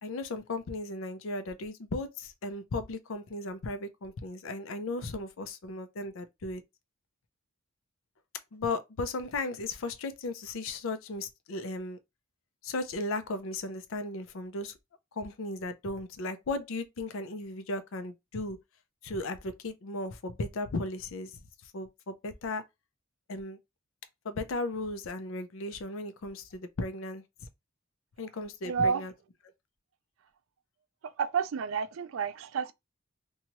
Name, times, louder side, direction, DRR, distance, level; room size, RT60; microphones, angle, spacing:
voice 1, 0.0-6.6 8.5-12.0 12.6-14.7 15.2-18.6 19.0-21.4 21.7-22.6 23.3-23.6 24.2-27.2 28.2-29.1, left 2 dB, 70° left, 0.5 m, -36 dB
voice 2, 28.6-29.0 31.0-32.7, right 6 dB, 75° right, 0.4 m, -30 dB
2.8 x 2.3 x 2.9 m
head